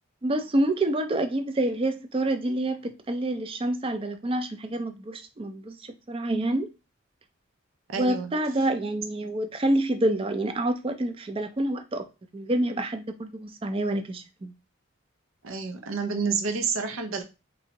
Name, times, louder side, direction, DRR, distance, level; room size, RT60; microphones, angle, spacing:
voice 1, 0.2-5.8 6.1-6.7 8.0-12.1 12.3-14.5, right 1 dB, 25° right, 0.4 m, -27 dB
voice 2, 7.9-8.3 15.4-17.2, right 5 dB, 85° right, 0.5 m, -29 dB
4.2 x 2.7 x 2.9 m
head